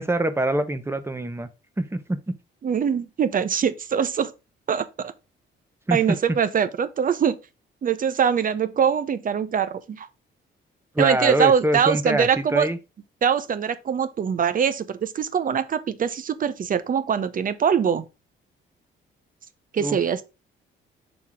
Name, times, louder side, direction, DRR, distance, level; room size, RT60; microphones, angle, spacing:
voice 1, 0.0-1.5 1.8-2.3 5.9-6.4 10.9-12.8 19.8-20.0, right 1 dB, 10° right, 0.9 m, -25 dB
voice 2, 2.6-4.3 4.7-5.1 5.9-7.4 7.8-10.1 11.0-12.7 13.2-18.0 19.7-20.2, right 7 dB, 45° right, 0.8 m, -23 dB
6.1 x 3.6 x 4.8 m
cardioid pair, 90°, 20 cm